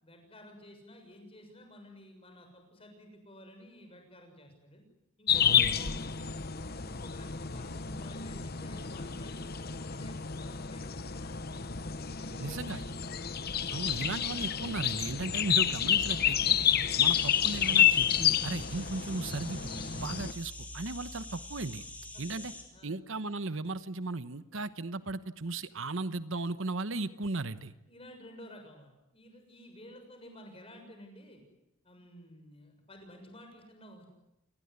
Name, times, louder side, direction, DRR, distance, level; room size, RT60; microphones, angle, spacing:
voice 1, 0.0-4.8 5.2-6.3 6.6-11.4 12.1-12.9 16.8-17.0 22.1-22.4 22.7-22.9 27.9-31.4 31.8-34.1, left 1 dB, 25° left, 5 dB, 6.8 m, -52 dB
sound 1, 5.3-20.3, left 9 dB, 45° left, 1.0 m, -30 dB
voice 2, 5.4-5.8 12.4-12.8 13.7-16.5 17.0-21.8 22.2-22.5 22.8-27.7, right 3 dB, 65° right, 13 dB, 1.0 m, -36 dB
sound 2, 14.5-22.8, right 1 dB, 65° left, 4.3 m, -51 dB
sound 3, 17.0-22.6, left 2 dB, 5° left, 4.0 m, -47 dB
28.5 x 20.0 x 9.8 m, 0.88 s
head